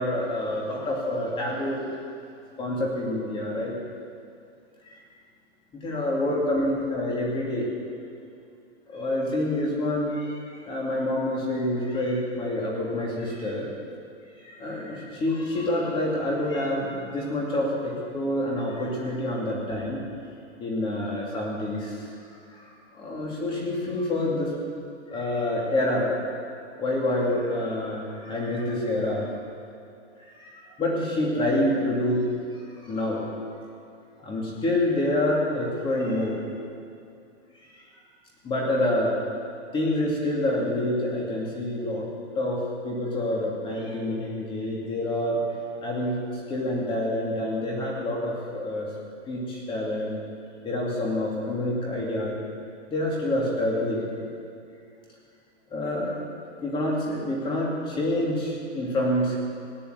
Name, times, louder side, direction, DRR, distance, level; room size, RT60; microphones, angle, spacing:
voice 1, 0.0-2.0 2.6-3.8 4.8-5.0 5.8-7.7 8.9-13.7 14.4-20.0 20.6-22.1 22.5-24.5 25.1-26.1 26.8-29.3 30.2-30.5 30.8-33.3 34.2-36.4 37.7-37.8 38.4-39.2 39.7-42.1 42.4-45.4 45.8-48.9 49.3-50.2 50.6-52.4 52.9-54.1 55.7-56.3 56.6-59.4, left 1 dB, 15° left, -3 dB, 2.5 m, -27 dB
17.0 x 10.5 x 8.1 m, 2.5 s
supercardioid pair, 175°, 36 cm